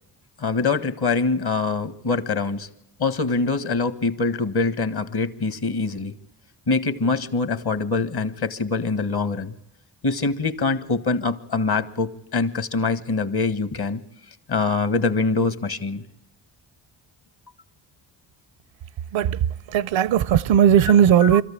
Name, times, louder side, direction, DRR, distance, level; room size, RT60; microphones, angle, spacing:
voice 1, 0.4-2.7 3.0-6.1 6.7-9.5 10.0-14.0 14.5-16.0 21.2-21.4, left 3 dB, 50° left, 1.6 m, -24 dB
voice 2, 19.7-21.4, right 9 dB, 70° right, 0.7 m, -17 dB
25.0 x 13.5 x 8.6 m
supercardioid pair, 50°, 48 cm